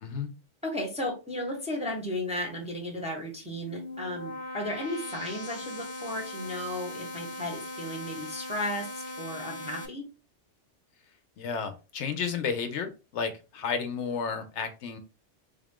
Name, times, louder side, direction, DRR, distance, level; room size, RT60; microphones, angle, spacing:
voice 1, 0.6-10.1, left 1 dB, 5° right, 0 dB, 0.7 m, -34 dB
sound 1, 3.4-9.9, left 2 dB, 40° left, 0.7 m, -39 dB
voice 2, 11.4-15.0, left 6 dB, 75° left, 8 dB, 0.9 m, -32 dB
3.5 x 2.4 x 3.5 m, 0.31 s
omnidirectional pair, 1.3 m